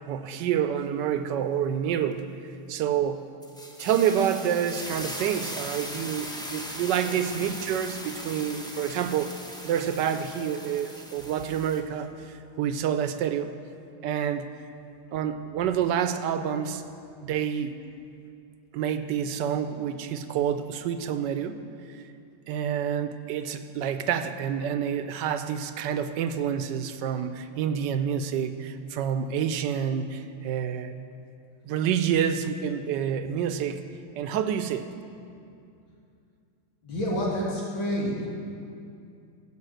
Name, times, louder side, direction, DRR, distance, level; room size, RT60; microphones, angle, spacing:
voice 1, 0.1-2.2 2.7-3.2 3.8-9.3 9.6-12.1 12.6-13.5 14.0-14.6 15.1-16.8 17.2-17.8 18.7-21.6 21.9-22.0 22.5-30.9 31.6-33.8 34.1-34.9, right 8 dB, 75° right, 10 dB, 1.2 m, -28 dB
sound 1, 3.4-11.8, equal, 5° left, 0.3 m, -39 dB
voice 2, 36.8-38.3, equal, 90° left, -6 dB, 3.4 m, -29 dB
15.5 x 5.5 x 7.8 m, 2.5 s
omnidirectional pair, 2.1 m